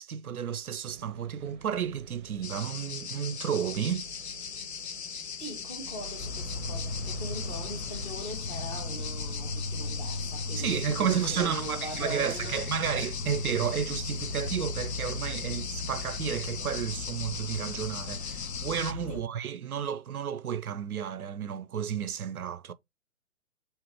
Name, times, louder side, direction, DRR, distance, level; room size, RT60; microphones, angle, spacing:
voice 1, 0.0-4.1 10.6-22.7, right 8 dB, 80° right, 0.5 m, -32 dB
sound 1, 0.8-8.1, right 6 dB, 35° right, 0.6 m, -49 dB
sound 2, 2.4-18.9, left 7 dB, 50° left, 0.6 m, -39 dB
voice 2, 5.4-12.7 19.1-19.3, equal, 10° left, 0.8 m, -41 dB
Insect, 6.2-19.2, left 2 dB, 70° left, 0.9 m, -37 dB
3.4 x 3.1 x 4.3 m
figure-of-eight pair, 125°, 43 cm